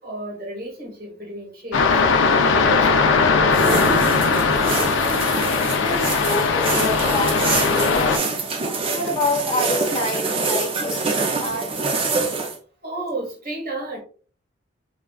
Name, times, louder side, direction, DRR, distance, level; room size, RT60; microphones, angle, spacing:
voice 1, 0.0-1.9 2.4-3.6 12.8-14.0, right 1 dB, 45° right, -2 dB, 1.1 m, -32 dB
sound 1, 1.7-8.2, left 4 dB, 60° left, 0.4 m, -19 dB
sound 2, 3.5-12.6, right 3 dB, 25° right, 0.4 m, -25 dB
voice 2, 5.8-8.3 8.9-11.8, left 2 dB, 15° left, -5 dB, 0.8 m, -27 dB
3.6 x 2.3 x 2.2 m, 0.39 s
head